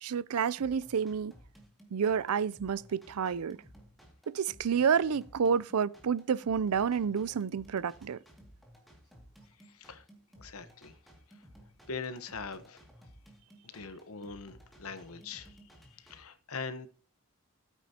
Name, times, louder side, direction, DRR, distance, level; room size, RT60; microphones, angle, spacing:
voice 1, 0.0-1.3 1.9-3.6 4.3-8.2, right 7 dB, 85° right, 0.5 m, -29 dB
sound 1, 0.6-16.2, equal, ahead, 2.2 m, -57 dB
voice 2, 9.6-10.0 10.4-11.0 11.9-12.8 13.6-15.6 15.8-16.9, left 4 dB, 75° left, 1.1 m, -42 dB
14.5 x 9.0 x 2.8 m
head